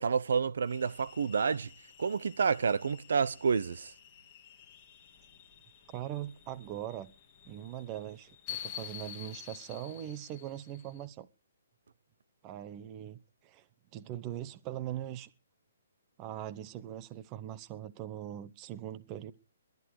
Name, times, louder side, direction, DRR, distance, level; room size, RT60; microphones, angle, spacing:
voice 1, 0.0-1.7 2.0-3.9, right 6 dB, 65° right, 0.9 m, -29 dB
sound 1, 0.7-11.0, left 10 dB, 15° left, 1.9 m, -49 dB
voice 2, 5.9-7.1 7.5-11.3 12.4-13.6 13.9-15.3 16.2-19.3, right 12 dB, 15° right, 0.7 m, -41 dB
21.5 x 10.5 x 4.7 m
hypercardioid pair, 175°, 0 cm